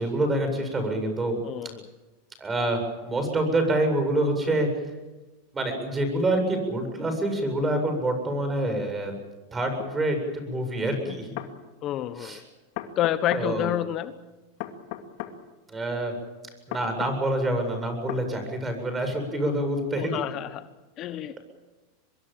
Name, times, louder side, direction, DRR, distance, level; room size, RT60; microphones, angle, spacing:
voice 1, 0.0-1.4 2.4-4.7 5.5-9.1 9.5-11.3 12.2-12.4 13.3-13.7 15.7-16.1 16.7-20.2, right 1 dB, 20° right, 6 dB, 7.9 m, -26 dB
voice 2, 1.4-1.9 11.8-12.4 13.0-14.1 20.0-20.7 21.0-21.4, left 12 dB, 45° left, 12 dB, 1.2 m, -28 dB
sound 1, 9.8-9.9 11.1-11.5 12.8-13.5 14.6-15.4 16.7-17.2 18.1-18.3, left 12 dB, 60° left, 2.4 m, -35 dB
25.0 x 22.0 x 7.5 m, 1.1 s
hypercardioid pair, 110°, 0 cm